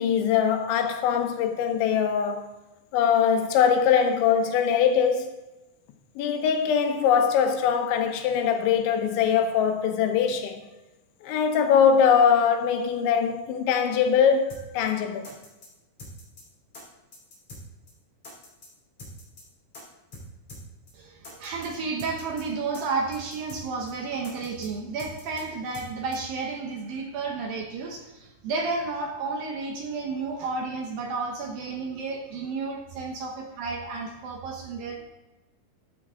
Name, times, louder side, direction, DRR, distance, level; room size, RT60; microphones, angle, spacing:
voice 1, 0.0-2.5 2.9-5.3 6.2-10.6 11.2-15.3, left 7 dB, 85° left, 3.4 m, -22 dB
sound 1, 14.5-14.6 14.9-15.0 15.2-15.7 16.0-16.4 16.7-16.8 17.1-17.6 17.9-18.0 18.2-18.7 19.0-19.4 19.7-19.8 20.1-20.2 20.5-20.6 20.9-21.0 21.2-21.7 22.0-22.4 22.7-22.8 23.1-23.6 23.9-24.0 24.2-24.7 25.0-25.4 25.7-25.9 26.1-26.2, left 2 dB, 35° left, 3.5 m, -44 dB
voice 2, 20.9-35.1, right 4 dB, 70° right, 2.3 m, -32 dB
15.0 x 7.4 x 3.7 m
omnidirectional pair, 5.2 m